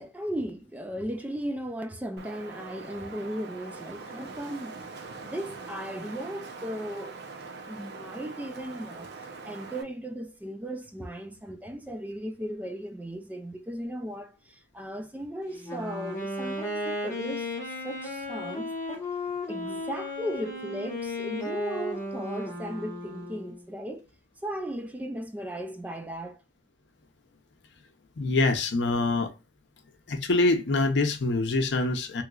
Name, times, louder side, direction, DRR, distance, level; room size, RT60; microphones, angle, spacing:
voice 1, 0.0-4.8 5.2-7.2 7.7-9.1 9.4-19.1 19.5-24.0 24.4-26.4, equal, 10° right, 0.3 m, -36 dB
Wind, 2.2-9.8, right 4 dB, 60° right, 0.6 m, -42 dB
Wind instrument woodwind instrument, 15.6-23.7, left 2 dB, 15° left, 1.4 m, -35 dB
voice 2, 28.2-29.3 30.1-32.2, left 2 dB, 65° left, 0.6 m, -25 dB
3.1 x 2.8 x 2.3 m
head